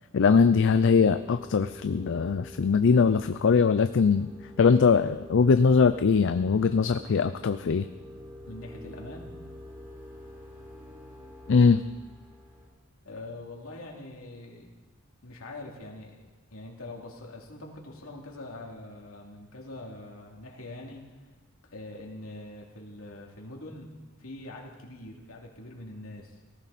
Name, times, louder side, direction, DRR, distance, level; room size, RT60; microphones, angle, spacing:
voice 1, 0.1-4.3 4.6-7.9 11.5-11.8, left 5 dB, 60° left, 10 dB, 0.5 m, -21 dB
sound 1, 0.7-12.7, left 1 dB, 35° right, 6.2 m, -47 dB
voice 2, 8.5-9.3 13.0-14.7 15.2-21.1 21.7-23.9 24.2-26.4, left 2 dB, 75° left, -1 dB, 2.9 m, -43 dB
18.0 x 14.5 x 4.2 m, 1.3 s
head